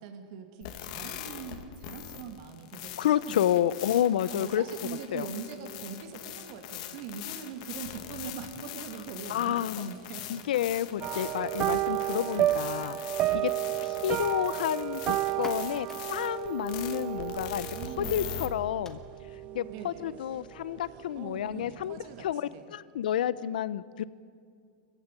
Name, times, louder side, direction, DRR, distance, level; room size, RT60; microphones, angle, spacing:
voice 1, 0.0-4.0 4.3-10.5 13.4-13.6 17.7-18.3 19.7-20.1 20.9-22.7, right 6 dB, 45° right, 6 dB, 2.4 m, -42 dB
sound 1, 0.6-18.5, left 11 dB, 50° left, 2.1 m, -42 dB
voice 2, 3.0-4.6 5.1-5.3 9.3-9.9 10.3-13.0 13.3-13.5 13.8-17.7 18.0-19.0 19.5-22.4 22.7-24.0, left 11 dB, 80° left, 17 dB, 0.9 m, -30 dB
sound 2, 11.0-20.6 20.8-21.2 21.6-21.7, right 13 dB, 25° right, 0.5 m, -32 dB
sound 3, 15.3-22.7, left 3 dB, 10° left, 1.3 m, -54 dB
24.0 x 15.5 x 9.9 m, 2.2 s
supercardioid pair, 165°, 5 cm